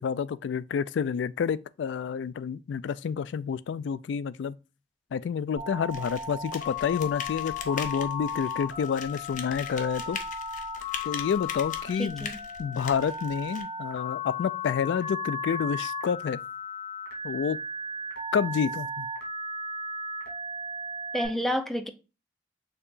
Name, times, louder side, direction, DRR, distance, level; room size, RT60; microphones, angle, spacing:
voice 1, 0.0-4.6 5.1-10.2 11.0-12.3 12.6-16.4 17.2-17.6 18.3-19.1, left 7 dB, 85° left, 0.3 m, -29 dB
Telephone, 5.6-21.3, left 3 dB, 65° left, 2.5 m, -35 dB
sound 1, 5.9-13.6, left 6 dB, 45° left, 0.7 m, -41 dB
voice 2, 12.0-12.4 21.1-21.9, equal, ahead, 0.5 m, -29 dB
6.6 x 2.9 x 2.4 m
head